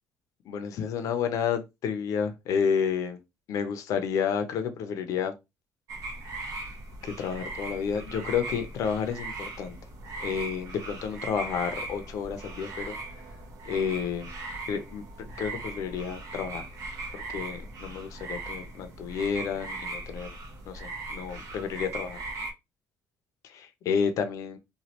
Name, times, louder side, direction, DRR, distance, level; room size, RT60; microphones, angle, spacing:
voice 1, 0.4-3.2 3.5-5.3 7.0-9.8 10.2-13.0 13.7-14.3 14.7-15.0 15.4-16.6 17.3-20.3 20.7-22.2 23.4-24.6, left 7 dB, 65° left, 0.6 m, -30 dB
sound 1, 5.9-22.5, right 2 dB, 70° right, 0.9 m, -39 dB
3.1 x 2.3 x 2.9 m
cardioid pair, 140°, 6 cm